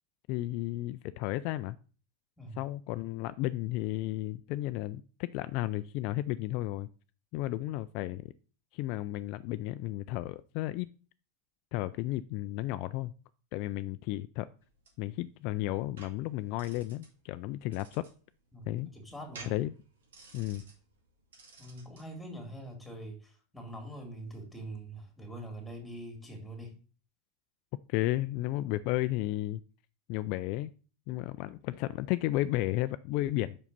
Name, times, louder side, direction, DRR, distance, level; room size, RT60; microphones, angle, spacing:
voice 1, 0.3-1.8 2.6-6.9 7.3-8.3 8.7-10.9 11.7-13.1 13.5-14.5 15.0-18.0 18.7-18.9 19.5-19.7 20.3-20.7 27.9-29.6 30.1-30.7 31.1-33.6, left 16 dB, 55° left, 12 dB, 0.3 m, -33 dB
sound 1, 14.6-22.1, right 4 dB, 90° right, 2.1 m, -54 dB
voice 2, 18.5-19.5 21.6-26.7, right 1 dB, 5° left, 3 dB, 2.3 m, -44 dB
5.4 x 5.0 x 5.3 m, 0.38 s
supercardioid pair, 120°, 0 cm